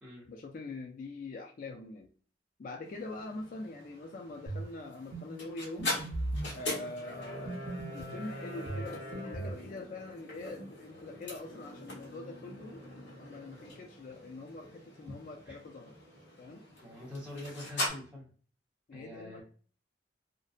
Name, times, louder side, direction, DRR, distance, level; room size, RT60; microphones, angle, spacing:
voice 1, 0.3-2.1 2.6-6.0 6.5-7.6 7.9-16.0 16.4-16.6 18.9-19.4, left 2 dB, 50° left, 2 dB, 0.3 m, -44 dB
sound 1, 2.8-17.9, left 1 dB, 70° left, 1.1 m, -42 dB
sound 2, 4.5-4.7 5.1-5.3 5.8-6.5 7.5-8.2 8.7-9.6, right 2 dB, 85° right, 0.6 m, -37 dB
voice 2, 16.8-18.2 18.9-19.4, left 1 dB, 5° right, -6 dB, 0.8 m, -44 dB
2.6 x 2.0 x 2.4 m, 0.42 s
head